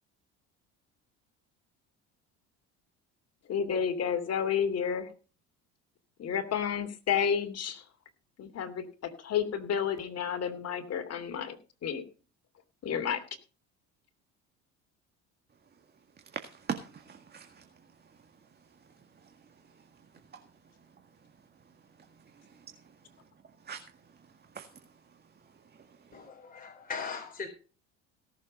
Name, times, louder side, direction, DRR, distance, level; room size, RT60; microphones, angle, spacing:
voice 1, 3.5-5.1 6.2-7.8 8.4-11.6 11.8-12.0 12.8-13.2, left 7 dB, 50° left, 2.9 m, -31 dB
voice 2, 16.2-21.3 21.6-23.3 23.6-26.3, right 6 dB, 30° right, 1.8 m, -46 dB
voice 3, 26.1-27.5, left 5 dB, 25° left, 3.9 m, -39 dB
17.5 x 7.4 x 5.3 m
supercardioid pair, 85°, 33 cm